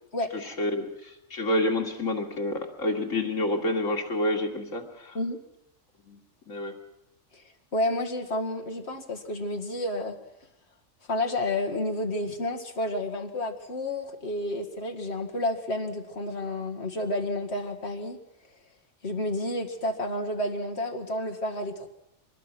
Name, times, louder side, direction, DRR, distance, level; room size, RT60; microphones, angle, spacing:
voice 1, 0.3-5.2 6.1-6.2 6.5-6.7, left 1 dB, 90° left, 2 dB, 2.7 m, -28 dB
voice 2, 7.7-10.2 11.1-18.2 19.0-21.9, left 1 dB, 60° left, 2 dB, 2.2 m, -30 dB
24.5 x 20.5 x 6.1 m, 0.81 s
omnidirectional pair, 1.3 m